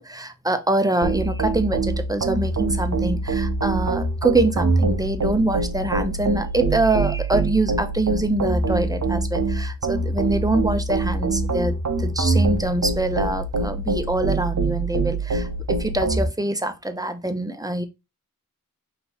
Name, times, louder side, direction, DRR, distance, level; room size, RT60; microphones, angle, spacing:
voice 1, 0.0-17.9, right 2 dB, 10° right, 0.7 m, -24 dB
sound 1, 1.0-16.3, right 3 dB, 55° right, 0.9 m, -24 dB
5.5 x 3.0 x 2.9 m
wide cardioid pair, 60°, 34 cm